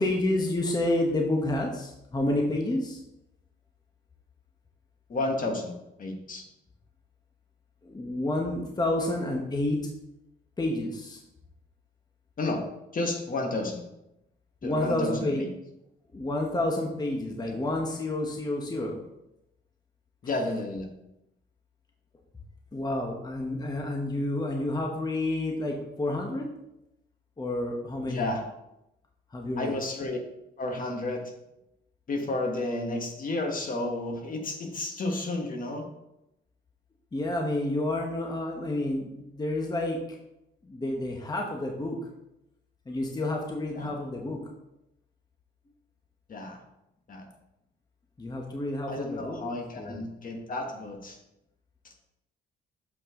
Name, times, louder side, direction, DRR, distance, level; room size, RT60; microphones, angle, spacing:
voice 1, 0.0-3.0 7.8-9.9 10.6-11.2 14.6-15.4 16.1-19.0 22.7-26.5 27.4-28.3 29.3-29.7 37.1-40.0 40.6-42.0 42.9-44.4 48.2-49.4 49.8-50.0, left 1 dB, 20° left, 1 dB, 1.1 m, -29 dB
voice 2, 5.1-5.7 6.0-6.4 12.4-12.6 12.9-13.8 14.6-15.5 20.2-20.9 28.1-28.4 29.6-30.2 30.6-31.2 32.1-35.8 43.7-43.9 46.3-46.6 47.1-47.3 48.9-51.2 51.8-51.9, left 2 dB, 45° left, 3 dB, 1.4 m, -31 dB
7.1 x 5.6 x 3.7 m, 0.88 s
cardioid pair, 90°, 20 cm